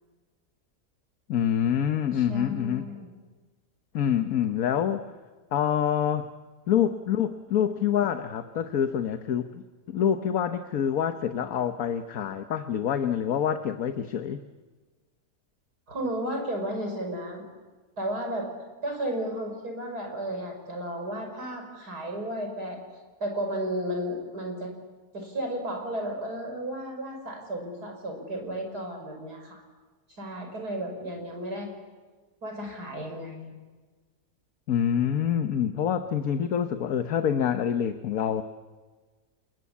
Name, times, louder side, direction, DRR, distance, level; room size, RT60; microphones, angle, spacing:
voice 1, 1.3-2.9 3.9-5.1 5.5-6.3 6.7-9.6 9.9-14.4 34.7-38.4, left 9 dB, 65° left, 8 dB, 1.4 m, -26 dB
voice 2, 2.1-3.1 15.9-17.4 18.0-18.5 18.8-22.8 23.2-24.7 25.1-29.6 30.1-31.7 32.4-33.6, right 1 dB, 80° right, 4 dB, 6.1 m, -33 dB
29.5 x 20.5 x 8.5 m, 1.3 s
omnidirectional pair, 1.7 m